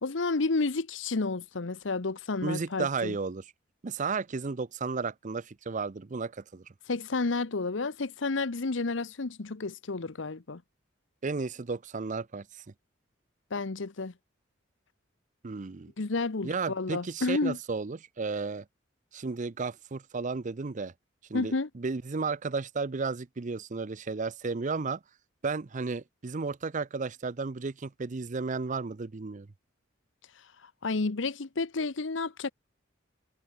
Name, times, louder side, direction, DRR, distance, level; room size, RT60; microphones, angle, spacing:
voice 1, 0.0-3.1 6.9-10.6 13.5-14.1 16.0-17.6 21.3-21.7 30.8-32.5, left 3 dB, 70° left, 0.9 m, -31 dB
voice 2, 2.4-3.4 3.8-6.7 11.2-12.6 15.4-15.9 16.4-18.6 19.1-20.9 21.3-25.0 25.4-29.5, right 4 dB, 40° right, 0.6 m, -33 dB
head